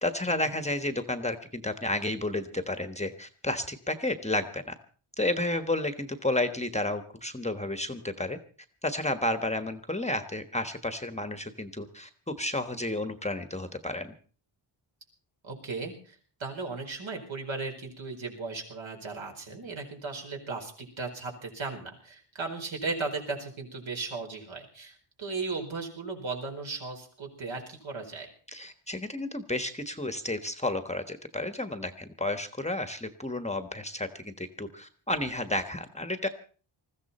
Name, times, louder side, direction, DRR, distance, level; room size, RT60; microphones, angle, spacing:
voice 1, 0.0-4.7 5.2-8.4 8.8-14.1 28.5-36.3, left 1 dB, 15° left, 8 dB, 1.2 m, -31 dB
voice 2, 15.4-28.3, right 3 dB, 65° right, 2 dB, 4.7 m, -36 dB
20.5 x 15.0 x 4.2 m, 0.41 s
wide cardioid pair, 110°, 50 cm